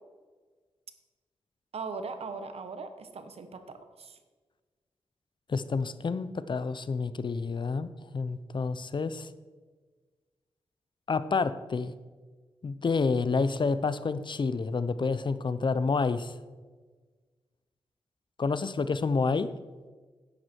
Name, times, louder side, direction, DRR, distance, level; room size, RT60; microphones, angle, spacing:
voice 1, 1.7-4.1, right 4 dB, 75° right, 9 dB, 1.1 m, -39 dB
voice 2, 5.5-9.3 11.1-11.9 12.6-16.3 18.4-19.5, left 4 dB, 50° left, 14 dB, 0.6 m, -29 dB
11.0 x 9.4 x 4.5 m, 1.4 s
cardioid pair, 60°, 11 cm